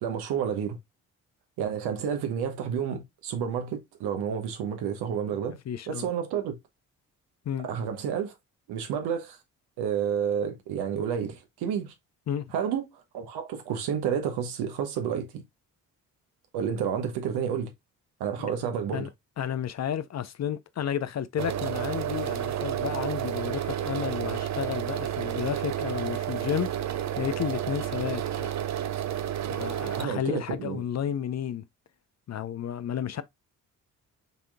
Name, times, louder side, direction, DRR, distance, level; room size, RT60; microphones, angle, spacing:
voice 1, 0.0-0.8 1.6-5.6 5.9-6.6 7.6-8.3 8.7-9.4 9.8-11.9 12.5-12.8 13.1-15.4 16.5-17.7 18.2-19.1 30.0-30.8, right 8 dB, 75° right, 1.2 m, -30 dB
voice 2, 5.7-6.1 7.5-7.7 12.3-12.5 18.5-18.6 18.9-19.1 19.4-28.5 29.5-31.6 32.3-33.2, left 9 dB, 40° left, 0.6 m, -32 dB
sound 1, 21.4-30.1, right 10 dB, 45° right, 0.6 m, -31 dB
5.8 x 3.7 x 2.2 m
hypercardioid pair, 45°, 40 cm